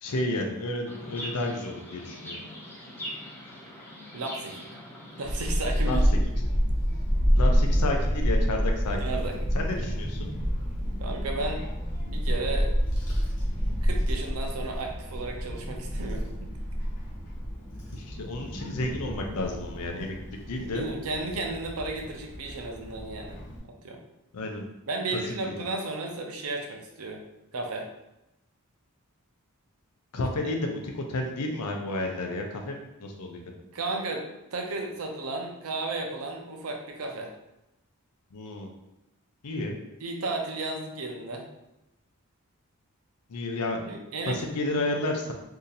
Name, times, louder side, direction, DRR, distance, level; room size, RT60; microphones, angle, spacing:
voice 1, 0.0-2.5 5.8-6.0 7.4-10.3 17.9-20.2 20.5-20.8 24.3-24.6 30.1-33.4 38.3-38.7 39.4-39.7 43.3-43.8 44.3-45.3, left 2 dB, 85° left, 2 dB, 0.6 m, -31 dB
Chirp tweet, 0.9-6.0, equal, 10° left, 0.6 m, -42 dB
voice 2, 4.1-4.8 5.2-6.3 9.0-9.4 11.0-11.6 12.1-12.7 13.8-16.5 20.6-23.4 23.8-24.0 24.9-27.2 27.5-27.9 33.7-37.3 40.0-41.5 43.8-44.4, right 2 dB, 70° right, 2 dB, 0.6 m, -34 dB
Child speech kid speaking / Wind, 5.2-23.6, equal, 40° left, 1.1 m, -28 dB
2.7 x 2.6 x 4.0 m, 0.91 s
head